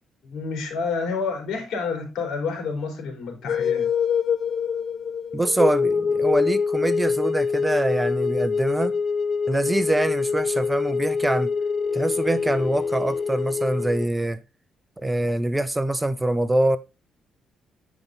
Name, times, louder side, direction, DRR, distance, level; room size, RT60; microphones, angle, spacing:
voice 1, 0.2-3.9, left 5 dB, 75° left, 3.7 m, -29 dB
sound 1, 3.5-14.1, left 5 dB, 50° left, 0.5 m, -25 dB
voice 2, 5.3-8.9 9.5-11.5 11.9-14.4 15.0-16.8, right 1 dB, 15° right, 0.6 m, -24 dB
9.2 x 5.2 x 3.9 m
cardioid pair, 90°, 0 cm